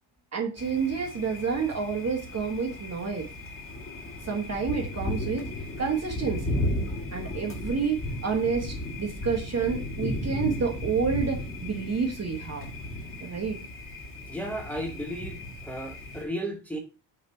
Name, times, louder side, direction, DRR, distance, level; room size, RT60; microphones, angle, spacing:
voice 1, 0.3-3.3 4.2-5.5 5.8-6.6 7.1-12.7 13.2-13.6, right 5 dB, 30° right, 1.1 m, -29 dB
Thunder, 0.6-16.2, left 1 dB, 25° left, 1.8 m, -35 dB
voice 2, 14.3-16.8, equal, 5° left, 1.2 m, -34 dB
6.6 x 3.3 x 4.3 m
cardioid pair, 125°, 49 cm